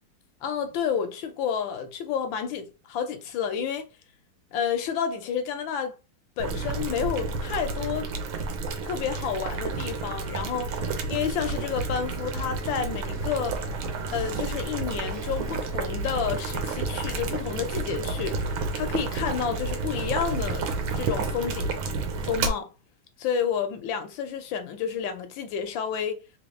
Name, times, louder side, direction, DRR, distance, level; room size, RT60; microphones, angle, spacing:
voice 1, 0.4-3.9 4.5-6.0 6.4-8.1 8.8-13.6 14.1-20.7 20.9-21.8 22.2-22.7 23.2-26.2, left 7 dB, 75° left, 1.2 m, -30 dB
Boiling, 6.4-22.5, right 3 dB, 75° right, 1.5 m, -31 dB
sound 1, 13.1-20.4, equal, 55° right, 1.5 m, -43 dB
3.5 x 2.8 x 3.1 m
omnidirectional pair, 2.4 m